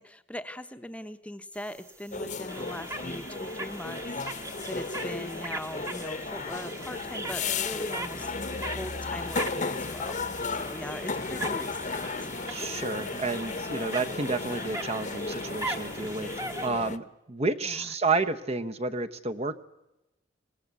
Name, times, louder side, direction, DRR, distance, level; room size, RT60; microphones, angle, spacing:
voice 1, 0.0-4.0 4.3-8.3 8.7-10.2 10.5-12.3 17.6-17.9, left 1 dB, 5° left, 9 dB, 1.0 m, -40 dB
sound 1, 1.5-16.7, right 2 dB, 15° right, 1.2 m, -40 dB
sound 2, 2.1-17.0, left 4 dB, 45° left, 1.0 m, -34 dB
voice 2, 12.5-16.3 16.6-19.6, right 3 dB, 35° right, 8 dB, 1.0 m, -30 dB
25.0 x 19.5 x 8.2 m, 0.93 s
head